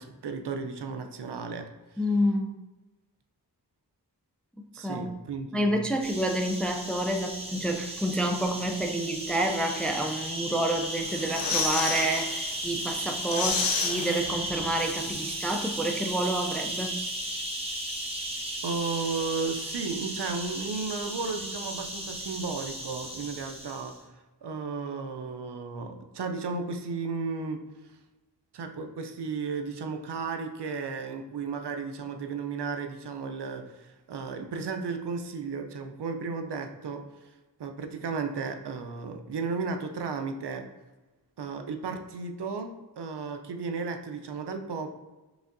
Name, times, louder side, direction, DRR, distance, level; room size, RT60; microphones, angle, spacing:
voice 1, 0.0-2.1 4.7-5.8 18.6-23.9 24.4-28.0 28.5-37.3 37.6-40.6 41.4-44.9, right 4 dB, 70° right, 6 dB, 0.5 m, -34 dB
voice 2, 2.0-2.6 4.6-5.1 5.5-17.0, right 1 dB, 5° left, 4 dB, 0.3 m, -29 dB
sound 1, 6.0-24.0, right 1 dB, 15° right, 1.1 m, -35 dB
sound 2, 11.0-12.3 12.7-12.8 13.1-14.8 15.1-15.2, left 4 dB, 75° left, 0.7 m, -30 dB
5.0 x 3.5 x 2.6 m, 1.1 s
wide cardioid pair, 50°, 42 cm